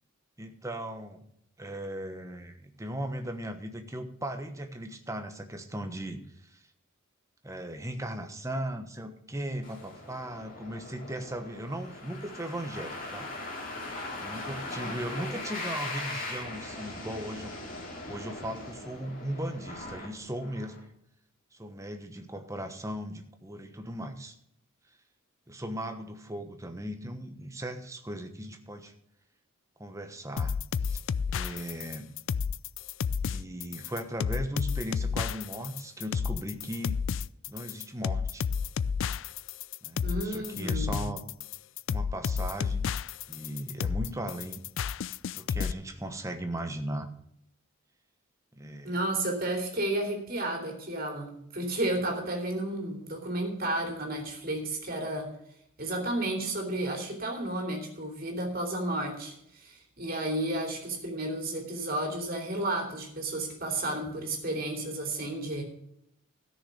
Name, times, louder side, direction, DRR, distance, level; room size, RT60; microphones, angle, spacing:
voice 1, 0.4-1.3 1.6-6.6 7.4-13.3 14.2-17.5 17.8-20.8 21.5-24.4 25.5-28.9 29.8-30.6 30.8-31.0 31.3-32.1 33.2-37.0 37.5-38.4 39.8-41.2 41.9-42.9 43.3-44.6 45.3-47.1 48.5-48.9, right 1 dB, 15° right, 6 dB, 1.1 m, -38 dB
sound 1, 9.6-20.8, left 2 dB, 40° left, 3.0 m, -40 dB
sound 2, 30.4-45.7, left 6 dB, 65° left, 0.3 m, -31 dB
voice 2, 40.0-41.1 48.8-55.3 55.8-65.6, right 1 dB, 45° right, 1 dB, 3.0 m, -32 dB
14.0 x 6.6 x 7.0 m, 0.73 s
head